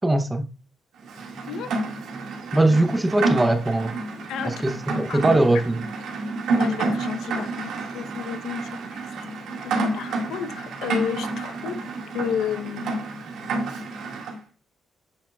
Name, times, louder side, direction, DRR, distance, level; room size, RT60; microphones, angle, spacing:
voice 1, 0.0-0.5 2.5-4.0 4.4-5.8, right 2 dB, 10° right, 0.5 m, -21 dB
Rain, 1.1-14.4, right 3 dB, 85° right, 1.7 m, -29 dB
voice 2, 6.5-8.6 8.9-9.0 9.6-11.8 12.1-13.0, left 8 dB, 85° left, 0.7 m, -31 dB
8.2 x 6.2 x 2.3 m
cardioid pair, 170°, 0 cm